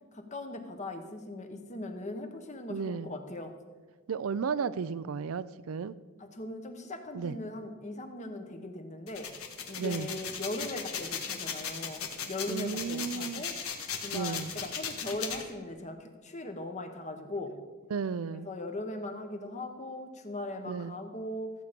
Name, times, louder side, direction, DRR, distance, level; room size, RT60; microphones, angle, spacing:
voice 1, 0.1-3.5 6.2-9.3 9.7-13.5 14.0-17.6 18.4-21.5, left 2 dB, 35° left, 6 dB, 1.1 m, -39 dB
voice 2, 2.7-3.1 4.1-5.9 7.1-7.4 9.8-10.1 12.5-13.4 14.1-14.5 17.9-18.5 20.7-21.0, right 5 dB, 75° right, 15 dB, 0.4 m, -34 dB
sound 1, 9.1-15.4, left 7 dB, 85° left, 1.4 m, -37 dB
14.5 x 8.3 x 5.2 m, 1.4 s
head